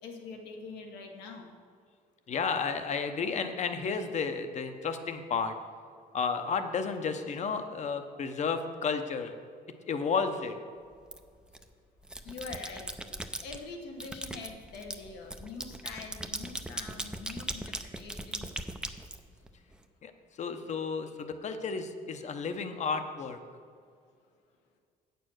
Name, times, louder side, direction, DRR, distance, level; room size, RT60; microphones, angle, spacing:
voice 1, 0.0-1.5 12.2-12.9 13.4-18.6, left 4 dB, 90° left, 2 dB, 1.4 m, -44 dB
voice 2, 2.3-5.6 6.1-9.4 9.9-10.6 20.0-20.1 20.4-23.4, left 5 dB, 45° left, 8 dB, 0.8 m, -32 dB
sound 1, 11.1-11.6 12.0-13.6 14.0-19.8, right 1 dB, 5° right, 0.5 m, -39 dB
8.5 x 6.8 x 6.4 m, 2.2 s
cardioid pair, 110°, 17 cm